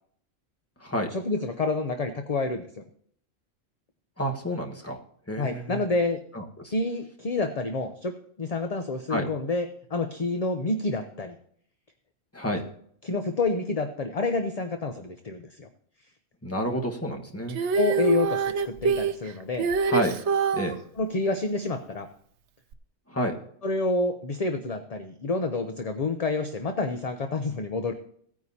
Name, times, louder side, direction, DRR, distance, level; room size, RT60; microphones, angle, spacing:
voice 1, 1.1-2.7 5.4-6.2 6.7-8.1 8.4-11.3 13.0-15.7 17.7-19.7 21.0-22.1 23.6-27.9, left 3 dB, 40° left, 7 dB, 0.7 m, -28 dB
voice 2, 4.2-5.0 5.3-5.8 6.3-6.7 9.1-9.3 12.3-12.6 16.4-17.6 19.8-20.2 20.5-20.8 23.1-23.3, equal, 10° left, 2 dB, 1.3 m, -29 dB
Female singing, 17.5-20.8 22.7-22.8, right 6 dB, 65° right, 1.0 m, -25 dB
17.0 x 9.4 x 2.8 m, 0.62 s
omnidirectional pair, 1.3 m